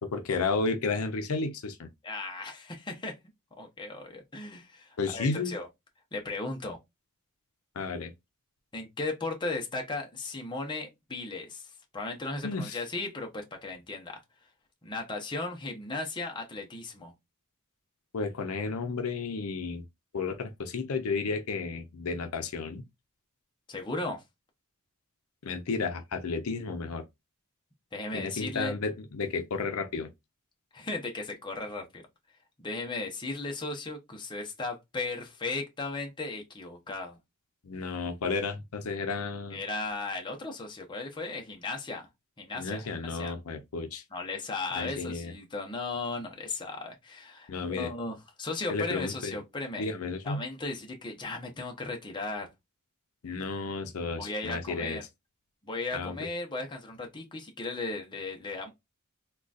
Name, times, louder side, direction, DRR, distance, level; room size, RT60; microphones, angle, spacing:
voice 1, 0.0-1.9 5.0-5.5 7.8-8.1 12.4-12.8 18.1-19.8 20.1-22.8 25.4-27.0 28.1-30.1 37.6-39.6 42.5-44.0 44.7-45.3 47.5-47.9 48.7-49.3 49.8-50.4 53.2-55.0 55.9-56.1, left 4 dB, 80° left, 0.5 m, -32 dB
voice 2, 2.0-3.2 3.6-5.7 6.1-6.8 8.7-14.2 14.8-17.1 23.7-24.2 27.9-28.8 30.7-32.0 32.6-37.2 39.5-42.1 42.4-43.3 44.1-49.9 50.2-52.5 54.2-55.0 55.6-58.7, left 3 dB, 20° left, 0.7 m, -36 dB
3.7 x 2.3 x 2.4 m
head